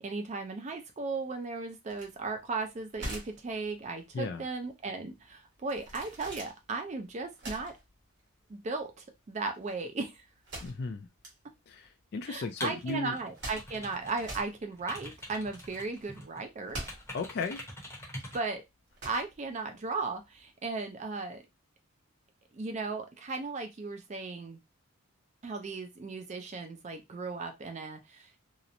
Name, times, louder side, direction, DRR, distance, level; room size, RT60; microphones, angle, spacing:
voice 1, 0.0-7.7 8.5-10.2 12.3-16.8 18.3-18.6 19.0-21.4 22.5-24.6 25.4-28.4, right 3 dB, 35° right, 6 dB, 0.4 m, -36 dB
sound 1, 1.9-20.4, right 1 dB, 55° right, 1.2 m, -46 dB
voice 2, 4.1-4.4 10.6-11.1 11.7-13.2 17.1-17.6, left 4 dB, 50° left, 5 dB, 0.3 m, -35 dB
sound 2, 12.6-14.4 14.7-16.4 16.9-18.5, left 1 dB, 10° left, 0.7 m, -44 dB
2.8 x 2.0 x 2.5 m, 0.20 s
head